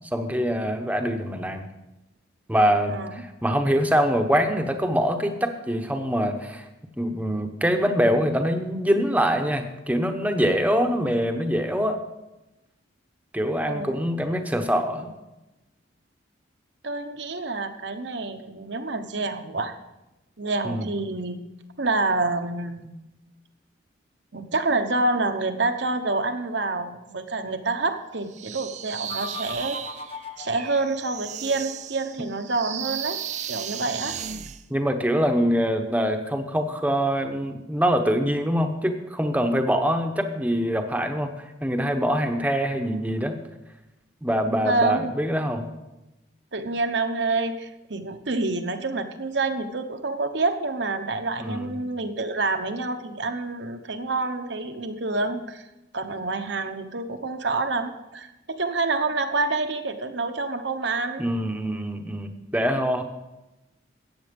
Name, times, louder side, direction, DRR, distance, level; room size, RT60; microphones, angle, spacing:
voice 1, 0.1-1.6 2.5-6.6 7.0-12.0 13.3-15.1 20.6-20.9 34.7-43.4 44.2-45.7 51.4-51.7 61.2-63.0, equal, 10° right, 6 dB, 0.9 m, -24 dB
voice 2, 2.9-3.2 13.6-14.0 16.8-19.7 20.4-21.4 21.8-22.9 24.3-29.8 30.4-33.2 33.5-34.2 44.6-45.1 46.5-55.7 55.9-61.2, right 3 dB, 65° right, 7 dB, 1.0 m, -27 dB
sound 1, 28.3-34.6, right 9 dB, 35° right, 0.5 m, -35 dB
sound 2, 29.1-32.0, left 3 dB, 30° left, 0.6 m, -40 dB
14.0 x 9.0 x 5.2 m, 0.99 s
head